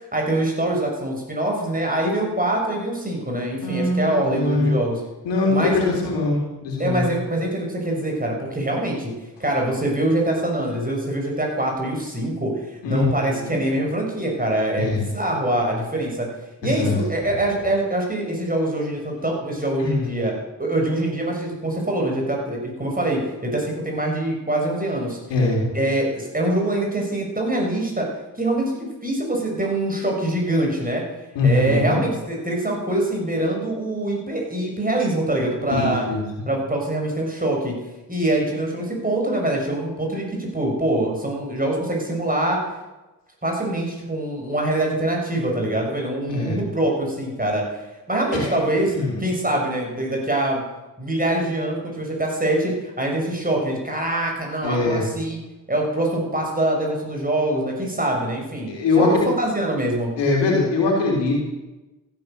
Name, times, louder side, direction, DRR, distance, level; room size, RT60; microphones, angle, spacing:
voice 1, 0.1-5.0 5.5-5.8 6.8-9.1 9.4-16.3 16.6-20.3 20.6-25.2 25.7-28.1 28.4-31.0 31.4-36.0 36.5-37.7 38.1-42.6 43.4-47.6 48.1-48.9 49.2-50.6 51.0-55.4 55.7-58.7 59.0-60.1, right 1 dB, 20° right, 0 dB, 6.3 m, -24 dB
voice 2, 3.6-4.7 5.2-7.0 12.8-13.6 14.8-15.0 16.6-17.0 19.8-20.1 25.3-25.6 31.4-32.0 35.7-36.2 46.3-46.6 48.3-48.5 48.9-49.2 54.6-55.0 58.7-59.3 60.2-61.3, left 3 dB, 85° left, -1 dB, 3.8 m, -22 dB
15.0 x 10.5 x 6.8 m, 1.1 s
supercardioid pair, 40°, 41 cm